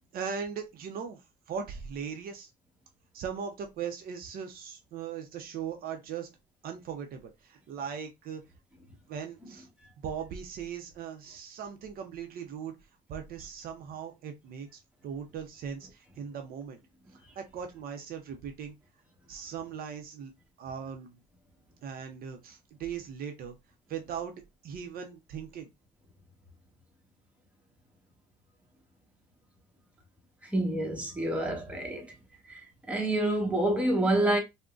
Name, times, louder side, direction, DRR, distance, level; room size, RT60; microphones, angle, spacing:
voice 1, 0.1-1.2 1.5-2.5 3.1-6.3 6.6-8.4 9.1-9.7 10.0-12.7 13.1-16.8 17.4-18.7 19.3-20.3 20.6-21.2 21.8-23.6 23.9-24.3 24.6-25.7, right 7 dB, 60° right, 0.6 m, -39 dB
voice 2, 30.4-32.1 32.5-34.4, right 1 dB, 5° right, 1.0 m, -28 dB
3.6 x 2.1 x 2.3 m
cardioid pair, 110°, 17 cm